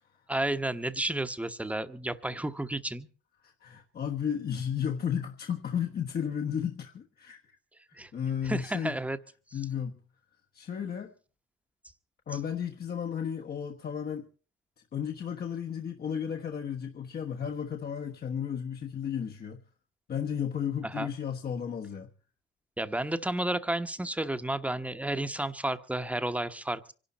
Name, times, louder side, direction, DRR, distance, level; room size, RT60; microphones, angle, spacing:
voice 1, 0.3-3.1 7.9-8.1 8.4-9.2 20.8-21.1 22.8-26.9, right 1 dB, 5° right, 1.1 m, -32 dB
voice 2, 3.4-7.6 7.9-8.9 9.5-10.0 10.5-11.1 12.3-14.3 14.9-19.6 20.1-22.1, left 8 dB, 50° left, 1.3 m, -33 dB
25.0 x 11.5 x 4.2 m
cardioid pair, 90°, 20 cm